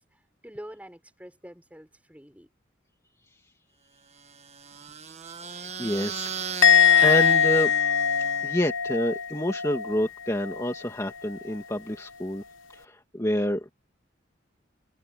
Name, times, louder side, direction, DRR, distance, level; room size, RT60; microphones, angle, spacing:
voice 1, 0.1-2.5, equal, 10° right, 5.6 m, -46 dB
sound 1, 4.2-8.7, right 6 dB, 35° right, 1.4 m, -37 dB
voice 2, 5.4-6.5 7.0-7.7 8.4-12.4 12.7-13.7, equal, 15° left, 2.2 m, -28 dB
Musical instrument, 6.6-10.0 10.3-10.7, left 8 dB, 90° left, 1.1 m, -21 dB
head